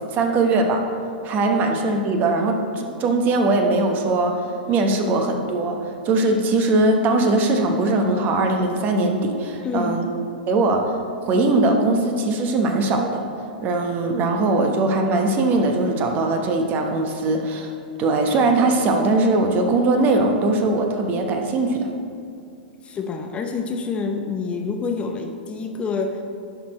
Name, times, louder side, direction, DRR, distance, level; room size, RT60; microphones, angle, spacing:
voice 1, 0.1-0.8 1.2-4.4 4.7-10.1 10.5-10.8 11.3-13.2 13.6-17.7 18.0-21.9, right 2 dB, 35° right, 4 dB, 1.0 m, -20 dB
voice 2, 9.6-10.0 22.8-26.2, left 4 dB, 20° left, 4 dB, 0.7 m, -27 dB
11.0 x 4.4 x 4.2 m, 2.4 s
hypercardioid pair, 115°, 5 cm